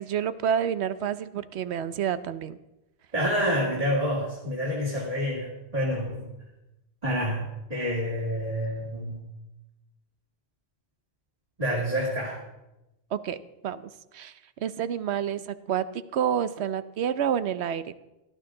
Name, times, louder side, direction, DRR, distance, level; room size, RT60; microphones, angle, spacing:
voice 1, 0.0-2.6 13.1-13.4 13.6-17.9, right 9 dB, 80° right, 13 dB, 1.0 m, -29 dB
voice 2, 3.1-6.3 7.0-7.4 7.7-9.2 11.6-12.4, equal, 35° right, -4 dB, 2.8 m, -28 dB
17.5 x 12.5 x 3.8 m, 0.95 s
omnidirectional pair, 1.1 m